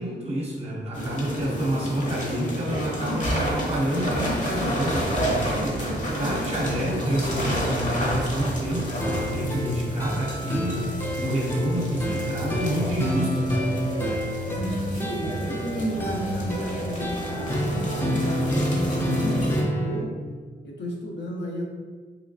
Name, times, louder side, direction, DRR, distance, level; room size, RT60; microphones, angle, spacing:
voice 1, 0.0-5.8 6.1-10.9 11.2-13.7, right 1 dB, 35° right, -4 dB, 0.6 m, -28 dB
sound 1, 0.9-19.6, equal, 45° left, 0.8 m, -30 dB
sound 2, 9.0-20.0, equal, 15° left, 0.5 m, -28 dB
voice 2, 14.5-20.1 20.6-21.6, equal, 80° left, -1 dB, 0.7 m, -33 dB
3.0 x 3.0 x 2.6 m, 1.5 s
wide cardioid pair, 105°, 18 cm